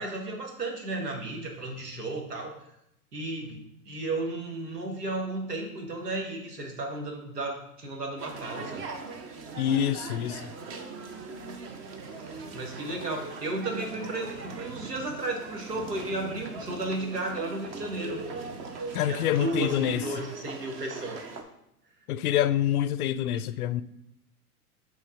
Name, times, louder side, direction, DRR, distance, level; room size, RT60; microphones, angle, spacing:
voice 1, 0.0-2.6 3.1-8.8 12.2-18.2 19.0-21.2, right 2 dB, 90° right, 1.7 m, -34 dB
sound 1, 8.2-21.4, right 4 dB, 25° right, 0.7 m, -40 dB
voice 2, 9.6-10.5 18.9-20.0 22.1-23.8, left 11 dB, 70° left, 0.6 m, -26 dB
6.3 x 3.8 x 5.0 m
hypercardioid pair, 115°, 46 cm